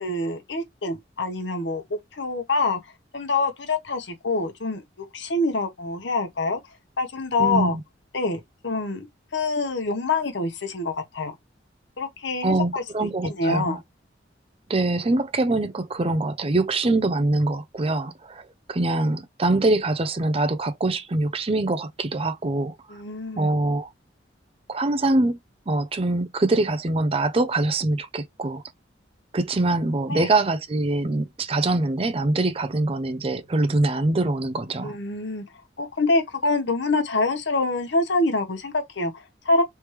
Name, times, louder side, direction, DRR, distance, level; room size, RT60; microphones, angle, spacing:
voice 1, 0.0-2.8 3.1-6.6 7.0-7.8 8.1-9.1 9.3-11.4 12.0-13.8 22.9-23.5 30.1-30.3 34.8-35.4 35.8-39.6, left 3 dB, 75° left, 1.0 m, -26 dB
voice 2, 7.4-7.8 12.4-13.8 14.7-23.0 23.4-23.9 24.7-25.4 25.7-28.6 29.3-35.0, right 2 dB, 30° right, 0.5 m, -24 dB
3.4 x 3.1 x 3.1 m
head